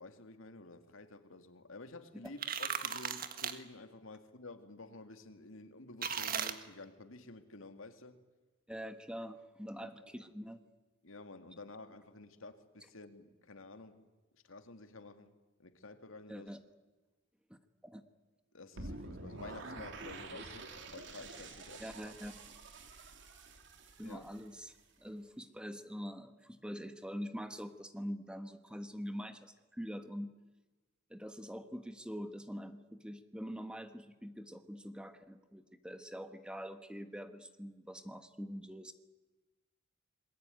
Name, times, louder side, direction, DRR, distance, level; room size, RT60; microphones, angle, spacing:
voice 1, 0.0-8.2 9.7-10.1 11.0-14.0 14.4-16.5 18.5-21.8 24.0-24.3, left 2 dB, 80° left, 8 dB, 2.3 m, -51 dB
sound 1, 2.3-3.5 6.0-6.5, right 7 dB, 45° right, 1.7 m, -36 dB
voice 2, 8.7-10.6 16.3-16.6 17.5-18.0 21.8-22.3 24.0-24.7 25.0-30.3 31.1-38.9, equal, 5° right, 8 dB, 1.3 m, -44 dB
sound 2, 18.8-24.8, right 2 dB, 60° right, 3.4 m, -48 dB
27.0 x 21.5 x 9.4 m, 1.2 s
head